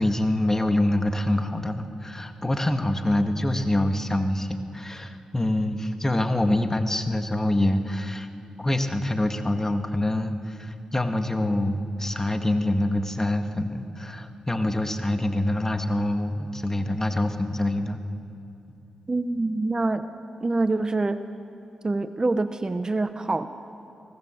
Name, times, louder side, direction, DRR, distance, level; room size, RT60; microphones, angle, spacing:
voice 1, 0.0-8.3 8.6-18.0, left 1 dB, 20° left, 6 dB, 1.9 m, -25 dB
voice 2, 19.1-20.1 20.4-21.2 21.8-23.5, right 2 dB, 35° right, 11 dB, 0.9 m, -25 dB
25.5 x 18.0 x 7.7 m, 2.8 s
supercardioid pair, 50°, 2 cm